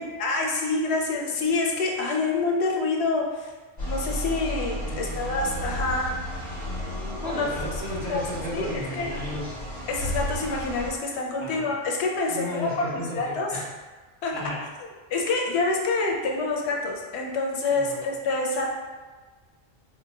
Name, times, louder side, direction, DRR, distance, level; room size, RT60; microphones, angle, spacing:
voice 1, 0.0-3.5 3.9-6.1 7.2-7.5 8.1-8.2 8.5-8.7 9.0-9.1 9.9-13.5 14.2-14.3 15.1-18.7, left 3 dB, 90° left, 0 dB, 0.9 m, -27 dB
sound 1, 3.8-10.9, equal, 50° left, 1.2 m, -33 dB
voice 2, 4.8-6.1 6.5-9.6 11.4-11.7 12.3-13.7 14.3-14.6 17.7-18.0, left 1 dB, 10° right, -11 dB, 1.4 m, -35 dB
4.1 x 2.7 x 2.8 m, 1.3 s
omnidirectional pair, 1.1 m